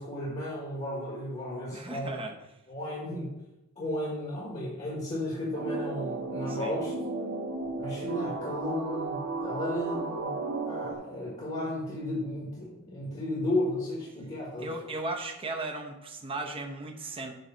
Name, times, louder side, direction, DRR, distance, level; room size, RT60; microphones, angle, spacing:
voice 1, 0.0-2.2 2.7-3.3 3.7-6.9 7.8-10.4 10.7-14.7, left 1 dB, 30° left, -6 dB, 1.5 m, -34 dB
voice 2, 1.7-2.3 6.5-6.7 14.6-17.4, right 2 dB, 25° right, 2 dB, 0.8 m, -36 dB
sound 1, 5.5-11.0, right 3 dB, 90° right, 1.5 m, -34 dB
7.6 x 3.2 x 5.5 m, 0.93 s
head